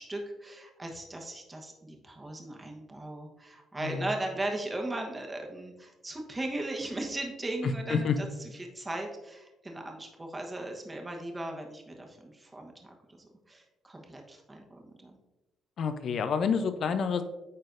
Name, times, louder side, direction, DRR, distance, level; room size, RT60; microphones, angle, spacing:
voice 1, 0.0-8.3 8.6-12.7 13.2-15.2, right 1 dB, 20° right, 1 dB, 1.1 m, -37 dB
voice 2, 7.6-8.2 15.8-17.2, left 6 dB, 60° left, 9 dB, 0.6 m, -28 dB
9.3 x 4.0 x 2.6 m, 1.0 s
cardioid pair, 90°, 0 cm